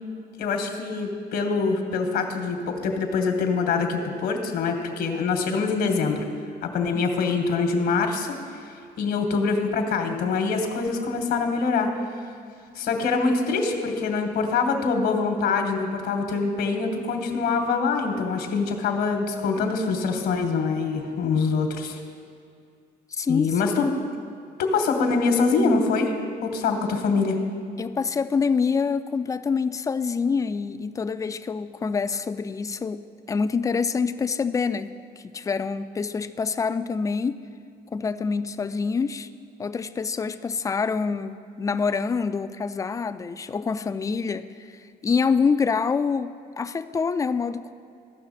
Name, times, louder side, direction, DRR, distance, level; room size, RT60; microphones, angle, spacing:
voice 1, 0.4-6.2 6.6-8.3 9.0-11.9 12.7-22.0 23.3-23.9 24.6-26.1 26.4-27.4, left 4 dB, 75° left, 4 dB, 1.2 m, -24 dB
voice 2, 23.1-23.6 23.8-24.0 27.8-34.9 35.3-37.4 37.9-39.3 39.6-47.7, left 5 dB, 20° left, 11 dB, 0.3 m, -26 dB
14.5 x 5.8 x 4.1 m, 2.3 s
cardioid pair, 110°, 17 cm